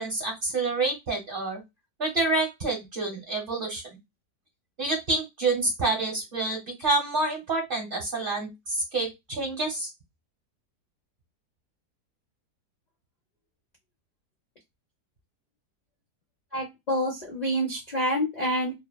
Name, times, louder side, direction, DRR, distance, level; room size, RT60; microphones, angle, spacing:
voice 1, 0.0-1.6 2.0-3.8 4.8-9.9, right 2 dB, 40° right, 1 dB, 0.8 m, -28 dB
voice 2, 16.5-18.7, equal, 65° left, -1 dB, 0.4 m, -27 dB
2.7 x 2.1 x 2.2 m, 0.20 s
omnidirectional pair, 1.8 m